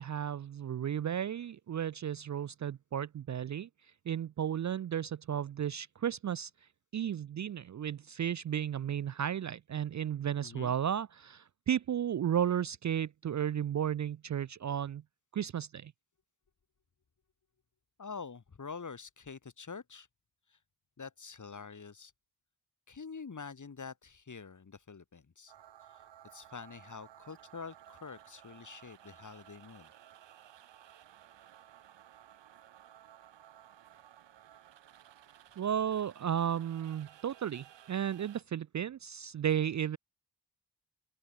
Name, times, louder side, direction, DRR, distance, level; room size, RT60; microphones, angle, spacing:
voice 1, 0.0-3.7 4.1-6.5 6.9-15.0 15.3-15.9 35.6-40.0, right 9 dB, 45° right, 0.4 m, -34 dB
voice 2, 10.4-10.7 18.0-20.1 20.5-20.6 21.0-22.1 22.9-25.5 25.9-26.1 26.3-29.9, left 5 dB, 45° left, 1.8 m, -46 dB
sound 1, 25.5-38.4, right 11 dB, 85° right, 1.0 m, -57 dB
open air
cardioid pair, 55°, 42 cm